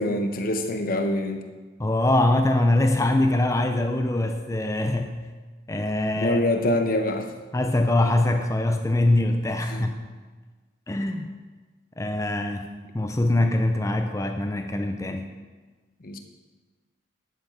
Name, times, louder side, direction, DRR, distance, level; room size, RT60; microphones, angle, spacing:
voice 1, 0.0-1.5 6.2-7.3 9.7-9.9 16.0-16.2, left 1 dB, 50° left, 5 dB, 1.0 m, -25 dB
voice 2, 1.8-5.2 5.7-6.4 7.5-9.9 10.9-11.3 12.0-15.3, left 1 dB, 15° left, 6 dB, 0.5 m, -23 dB
10.5 x 7.8 x 5.0 m, 1.3 s
head